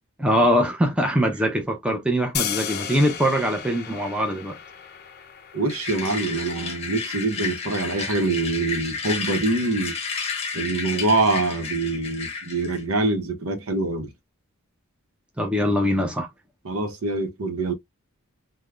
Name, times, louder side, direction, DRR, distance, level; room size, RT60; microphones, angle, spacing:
voice 1, 0.2-4.6 15.4-16.3, equal, 5° right, 0.5 m, -22 dB
sound 1, 2.3-8.4, left 8 dB, 45° left, 0.5 m, -35 dB
voice 2, 5.5-10.0 10.5-14.1 16.6-17.7, right 2 dB, 80° right, 0.8 m, -25 dB
sound 2, 5.7-12.8, left 5 dB, 30° left, 0.8 m, -32 dB
3.4 x 2.2 x 2.3 m
head